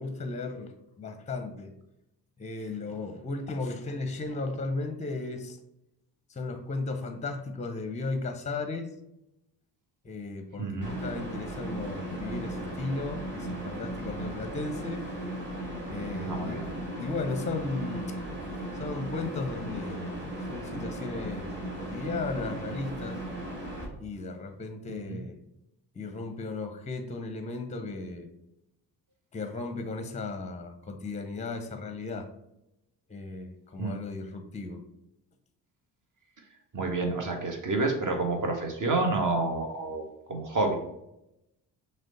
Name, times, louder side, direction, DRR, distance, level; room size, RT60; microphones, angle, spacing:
voice 1, 0.0-1.7 2.4-5.6 6.3-8.9 10.0-15.0 15.9-16.6 17.0-18.1 18.8-21.5 21.7-23.2 24.0-25.4 25.9-28.3 29.3-32.3 33.1-34.8, left 3 dB, 15° left, 7 dB, 0.6 m, -35 dB
voice 2, 10.6-10.9 16.2-16.7 25.1-25.2 33.8-33.9 36.7-40.0 40.3-40.7, right 3 dB, 40° right, 3 dB, 1.1 m, -29 dB
sound 1, 10.8-23.9, right 1 dB, 20° right, 1.7 m, -36 dB
6.2 x 2.2 x 3.9 m, 0.85 s
figure-of-eight pair, 40°, 50 cm